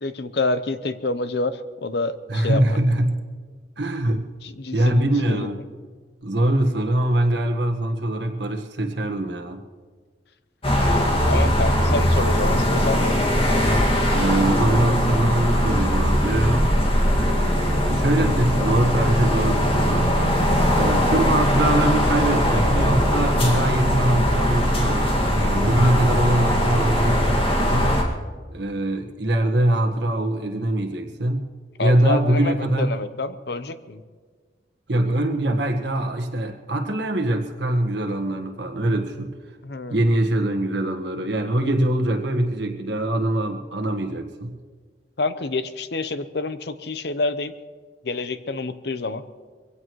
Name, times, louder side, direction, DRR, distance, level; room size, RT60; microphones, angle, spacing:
voice 1, 0.0-2.6 4.4-5.5 11.2-13.1 31.8-34.0 39.6-40.0 45.2-47.5 48.0-49.2, left 3 dB, 65° left, 12 dB, 0.7 m, -27 dB
voice 2, 2.3-3.2 3.8-4.3 4.7-5.6 6.2-9.6 14.1-16.7 17.1-20.2 20.7-28.0 28.5-31.5 31.8-32.9 34.9-39.3 39.9-44.6, right 1 dB, 80° right, 5 dB, 1.5 m, -23 dB
sound 1, 10.6-28.0, equal, 30° left, 2.0 m, -20 dB
23.0 x 16.5 x 3.1 m, 1.5 s
head